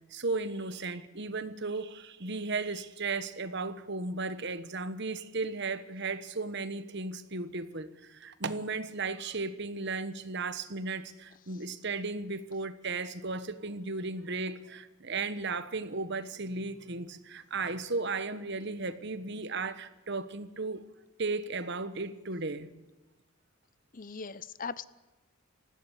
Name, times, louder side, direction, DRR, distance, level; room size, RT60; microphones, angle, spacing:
voice 1, 0.1-20.8 21.2-22.7, right 3 dB, 50° right, 1.2 m, -35 dB
voice 2, 23.9-24.8, left 5 dB, 40° left, 0.6 m, -39 dB
19.5 x 16.0 x 9.9 m
head